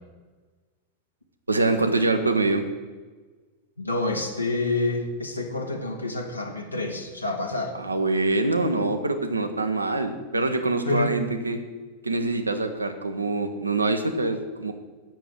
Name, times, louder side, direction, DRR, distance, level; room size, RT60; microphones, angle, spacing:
voice 1, 1.5-2.6 7.8-11.6 12.0-14.7, right 2 dB, 80° right, 7 dB, 1.0 m, -24 dB
voice 2, 3.8-7.7 10.8-11.2, left 2 dB, 85° left, 1 dB, 1.3 m, -28 dB
7.6 x 7.2 x 7.8 m, 1.4 s
figure-of-eight pair, 90°, 0 cm